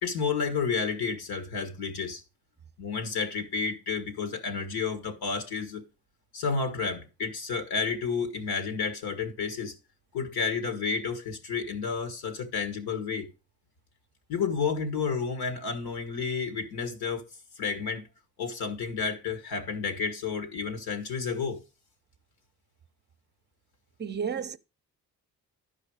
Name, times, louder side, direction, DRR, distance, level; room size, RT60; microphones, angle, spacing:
voice 1, 0.0-2.2 2.8-5.8 6.3-9.8 10.1-13.3 14.3-17.2 17.6-18.0 18.4-21.6, left 5 dB, 80° left, 1.8 m, -31 dB
voice 2, 24.0-24.6, right 6 dB, 30° right, 0.7 m, -32 dB
11.5 x 4.9 x 4.8 m
cardioid pair, 75°, 37 cm